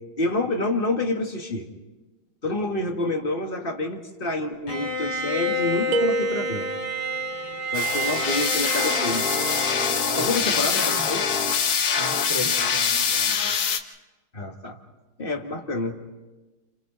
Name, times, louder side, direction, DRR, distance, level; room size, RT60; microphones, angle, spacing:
voice 1, 0.2-1.7 2.4-6.7 7.7-9.5 10.2-11.2 14.3-14.8 15.2-16.0, left 2 dB, 30° left, 3 dB, 1.7 m, -28 dB
Bowed string instrument, 4.7-10.7, right 1 dB, 80° left, 4.4 m, -29 dB
sound 1, 5.9-7.1, right 2 dB, 75° right, 1.6 m, -27 dB
sound 2, 7.7-13.8, left 6 dB, 55° left, 1.4 m, -24 dB
voice 2, 10.1-11.1 11.9-13.4, equal, 20° right, -8 dB, 2.8 m, -36 dB
30.0 x 28.0 x 4.0 m, 1.2 s
omnidirectional pair, 2.2 m